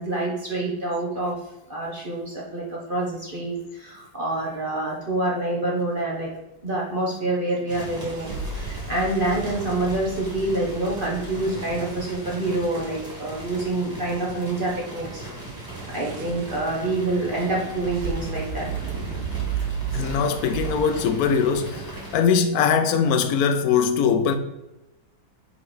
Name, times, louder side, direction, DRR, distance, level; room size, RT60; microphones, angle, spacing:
voice 1, 0.0-1.4 1.7-6.3 6.6-15.3 15.9-18.7, right 2 dB, 40° right, 0.8 m, -27 dB
sound 1, 7.7-22.2, right 2 dB, 10° right, 1.6 m, -38 dB
sound 2, 8.0-12.1 15.4-20.8, right 6 dB, 85° right, 1.4 m, -33 dB
voice 2, 19.9-21.8 22.1-24.3, left 6 dB, 70° left, 0.9 m, -21 dB
4.9 x 4.3 x 4.4 m
omnidirectional pair, 2.1 m